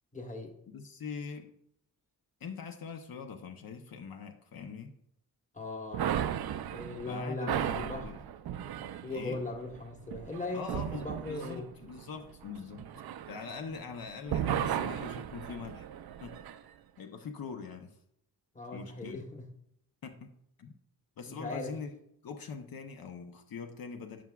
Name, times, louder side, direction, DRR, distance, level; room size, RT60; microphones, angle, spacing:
voice 1, 0.1-0.5 5.5-6.3 6.7-8.1 9.0-11.6 18.5-19.5 21.3-21.7, left 2 dB, 20° left, 3 dB, 1.1 m, -39 dB
voice 2, 0.7-1.5 2.4-4.9 7.1-8.2 8.8-9.4 10.5-15.9 16.2-16.4 17.0-18.0 18.7-19.2 20.0-20.3 20.6-20.7 21.2-21.9 22.2-24.2, left 5 dB, 70° left, 5 dB, 0.8 m, -43 dB
sound 1, 5.9-13.9 14.3-16.6, right 10 dB, 80° right, 0.5 m, -36 dB
15.0 x 6.0 x 2.3 m, 0.74 s
wide cardioid pair, 175°, 37 cm